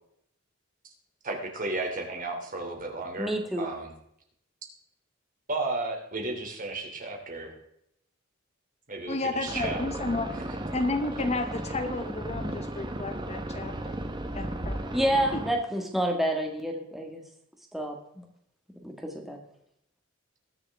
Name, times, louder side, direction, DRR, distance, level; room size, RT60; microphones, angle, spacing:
voice 1, 1.2-3.3 3.6-3.9 5.5-7.5 8.9-9.8, right 2 dB, 40° right, 1 dB, 2.8 m, -33 dB
voice 2, 3.2-3.7 14.9-17.2 17.7-18.0 18.8-19.4, right 1 dB, ahead, 1 dB, 1.8 m, -28 dB
voice 3, 9.1-10.3 10.7-14.0 14.3-15.0 15.3-15.4, left 2 dB, 30° left, 7 dB, 0.9 m, -32 dB
sound 1, 9.4-15.5, right 1 dB, 20° right, 1.1 m, -35 dB
21.0 x 7.0 x 3.5 m, 0.72 s
head